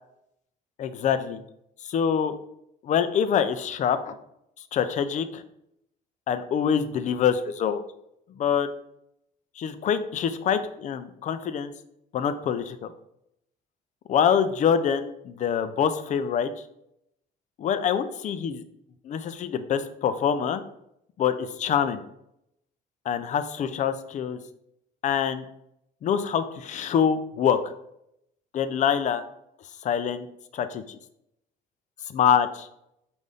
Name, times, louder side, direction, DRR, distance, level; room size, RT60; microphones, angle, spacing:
voice 1, 0.8-1.4 1.9-2.4 2.8-4.2 4.7-5.4 6.3-7.8 8.4-8.7 9.6-11.7 12.1-12.9 14.1-16.5 17.6-18.6 19.0-20.6 21.2-22.0 23.1-24.4 25.0-25.4 26.0-27.6 28.5-29.2 29.8-30.3 30.5-31.0 32.1-32.7, left 8 dB, 45° left, 11 dB, 0.4 m, -25 dB
5.3 x 2.6 x 3.3 m, 0.78 s
cardioid pair, 110°, 17 cm